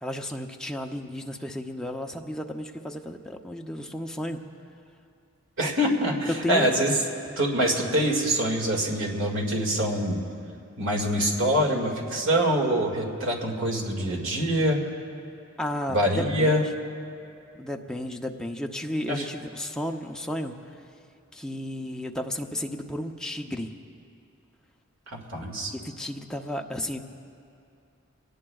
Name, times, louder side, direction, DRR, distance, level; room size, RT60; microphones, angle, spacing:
voice 1, 0.0-4.4 6.3-6.7 15.6-16.6 17.5-20.5 21.3-23.7 25.7-27.0, left 1 dB, 5° left, 2 dB, 0.6 m, -33 dB
voice 2, 5.6-6.9 7.4-10.2 10.8-14.8 15.9-16.6 19.1-19.2 25.1-25.7, equal, 60° right, 1 dB, 2.1 m, -25 dB
24.5 x 18.5 x 2.4 m, 2.5 s
head